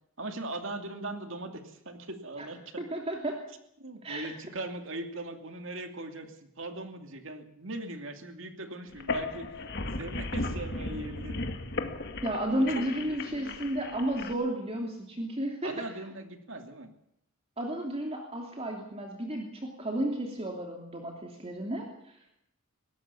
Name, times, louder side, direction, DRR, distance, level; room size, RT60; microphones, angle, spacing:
voice 1, 0.2-2.8 3.8-9.5 10.0-11.5 12.5-13.7 15.6-16.9, right 2 dB, 65° right, 6 dB, 2.7 m, -40 dB
voice 2, 2.8-3.4 4.0-4.3 12.2-15.7 17.6-22.4, right 1 dB, 30° right, 1 dB, 2.9 m, -33 dB
sound 1, 8.9-14.3, left 2 dB, 50° left, 1.9 m, -36 dB
22.5 x 18.0 x 7.1 m, 0.77 s
head